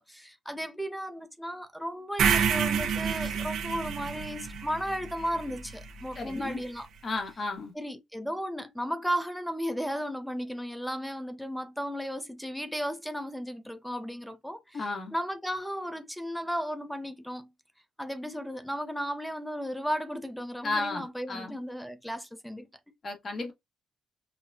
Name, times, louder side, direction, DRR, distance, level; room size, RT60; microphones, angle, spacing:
voice 1, 0.0-6.9 7.7-17.5 18.0-22.7, equal, ahead, 0.7 m, -35 dB
sound 1, 2.2-6.3, right 7 dB, 75° right, 0.9 m, -29 dB
voice 2, 6.1-6.6 7.0-7.7 14.7-15.1 20.6-21.6 23.0-23.5, left 3 dB, 40° left, 1.5 m, -33 dB
5.7 x 2.3 x 2.7 m
cardioid pair, 90°, 0 cm